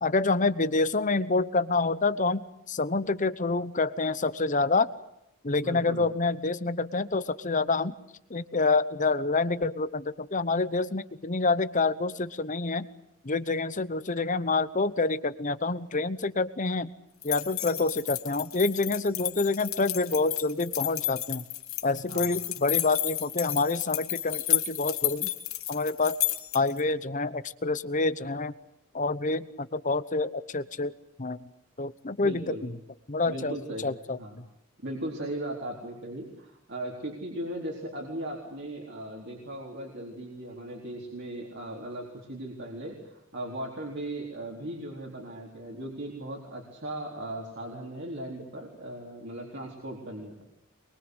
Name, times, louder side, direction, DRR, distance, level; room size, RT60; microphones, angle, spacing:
voice 1, 0.0-4.9 5.4-7.9 8.3-12.9 13.2-16.9 17.2-21.4 21.8-25.3 25.7-26.2 26.5-28.5 28.9-30.9 31.2-31.5 31.8-32.5 33.1-33.6 33.8-34.2, left 3 dB, 35° left, 14 dB, 0.9 m, -27 dB
voice 2, 5.6-6.1 22.1-22.3 32.2-32.6 33.3-34.4 34.8-50.4, right 1 dB, 55° right, -1 dB, 4.1 m, -38 dB
sound 1, 17.2-26.8, left 14 dB, 75° left, 2.6 m, -32 dB
24.5 x 23.0 x 8.1 m, 0.82 s
head